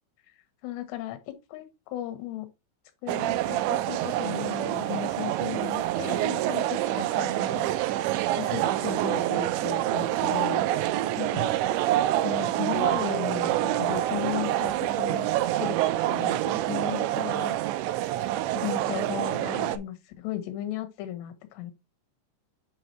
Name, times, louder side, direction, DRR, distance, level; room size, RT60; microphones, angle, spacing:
voice 1, 0.6-2.5 3.0-8.1 8.3-10.7 11.2-11.7 12.2-17.6 18.5-21.7, left 12 dB, 75° left, 3.1 m, -36 dB
sound 1, 3.1-19.8, right 14 dB, 85° right, 2.8 m, -27 dB
7.9 x 5.6 x 2.8 m
omnidirectional pair, 5.4 m